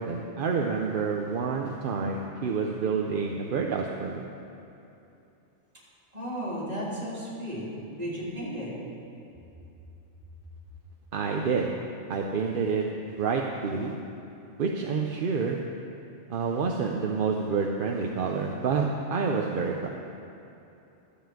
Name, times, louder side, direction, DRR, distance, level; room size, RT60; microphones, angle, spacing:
voice 1, 0.0-4.3 11.1-11.7 12.1-12.9 13.2-13.9 14.6-15.6 16.3-19.9, right 5 dB, 55° right, 1 dB, 0.7 m, -28 dB
voice 2, 6.1-8.7, equal, 30° right, -8 dB, 3.2 m, -34 dB
13.0 x 5.1 x 7.6 m, 2.8 s
omnidirectional pair, 1.2 m